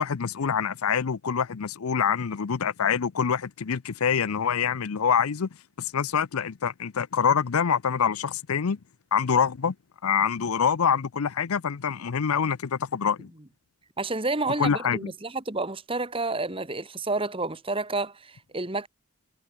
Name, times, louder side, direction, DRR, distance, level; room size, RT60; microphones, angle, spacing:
voice 1, 0.0-5.5 5.8-8.8 9.1-9.7 10.0-13.3 14.6-15.1, left 7 dB, 80° left, 0.6 m, -25 dB
voice 2, 14.0-18.9, right 3 dB, 25° right, 1.8 m, -30 dB
head